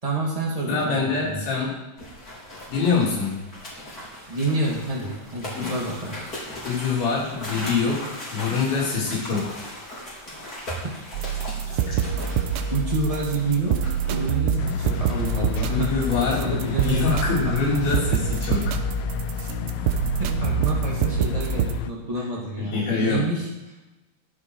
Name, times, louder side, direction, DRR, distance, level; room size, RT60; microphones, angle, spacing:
voice 1, 0.0-1.4 4.3-6.2 12.7-13.8 14.1-15.9 16.4-17.2 20.2-23.7, right 2 dB, 40° right, -3 dB, 0.4 m, -28 dB
voice 2, 0.7-1.7 2.7-3.3 5.6-5.7 6.6-9.6 11.9-12.0 15.7-18.7 22.6-23.2, left 5 dB, 70° left, -5 dB, 5.6 m, -25 dB
sound 1, 2.0-18.8, equal, 20° left, 4.0 m, -39 dB
sound 2, 11.1-21.7, right 7 dB, 80° right, 3.3 m, -26 dB
sound 3, 14.6-21.9, left 16 dB, 90° left, 2.3 m, -31 dB
22.5 x 7.5 x 4.8 m, 1.0 s
omnidirectional pair, 5.5 m